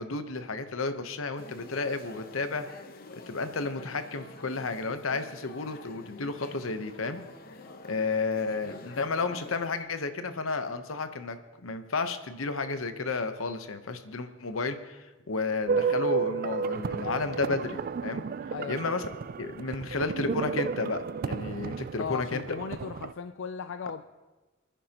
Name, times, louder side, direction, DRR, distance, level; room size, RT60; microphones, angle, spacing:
voice 1, 0.0-2.6 3.1-7.2 7.8-18.2 18.7-19.0 19.4-22.6, left 3 dB, 85° left, 9 dB, 0.9 m, -32 dB
sound 1, 1.4-9.8, left 3 dB, 45° left, 0.9 m, -48 dB
sound 2, 15.7-23.1, right 5 dB, 45° right, 0.3 m, -32 dB
voice 2, 18.5-18.9 22.0-24.0, left 6 dB, 65° left, 9 dB, 0.4 m, -37 dB
28.5 x 10.0 x 2.9 m, 1.2 s
head